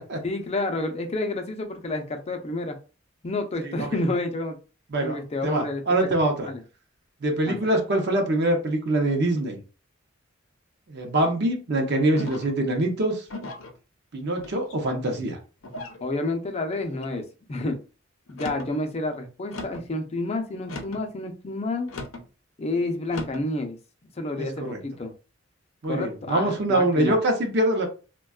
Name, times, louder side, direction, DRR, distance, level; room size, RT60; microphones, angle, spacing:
voice 1, 0.2-2.8 3.2-4.6 5.0-6.1 6.4-6.6 7.4-7.6 16.0-17.8 18.3-21.9 22.6-23.8 24.2-25.1 25.9-27.2, left 2 dB, 30° left, 5 dB, 0.5 m, -29 dB
voice 2, 3.7-4.0 4.9-5.2 5.4-6.5 7.2-9.6 10.9-13.2 14.1-15.4 24.4-24.8 25.8-27.9, right 1 dB, 55° right, 3 dB, 0.6 m, -24 dB
sound 1, 12.2-12.6 13.3-13.7 14.4-14.9 15.6-16.0 16.7-17.1 18.3-18.7 19.5-19.9 20.6-21.1 21.9-22.3 23.1-23.5, left 2 dB, 90° left, 0.6 m, -38 dB
3.4 x 2.2 x 2.3 m, 0.34 s
head